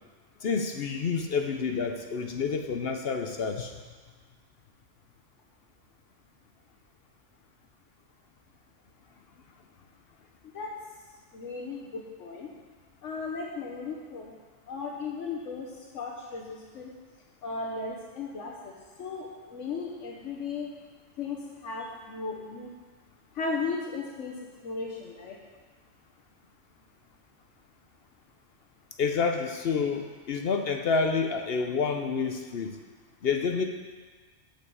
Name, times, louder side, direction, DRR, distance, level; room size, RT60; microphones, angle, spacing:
voice 1, 0.4-3.7 29.0-32.8 33.2-33.6, left 5 dB, 60° left, 4 dB, 0.9 m, -28 dB
voice 2, 11.3-12.5 13.0-14.3 14.7-16.9 17.4-20.7 21.2-22.7 23.3-24.4 24.6-25.4, left 4 dB, 85° left, 0 dB, 1.3 m, -36 dB
8.5 x 6.0 x 7.6 m, 1.4 s
omnidirectional pair, 1.2 m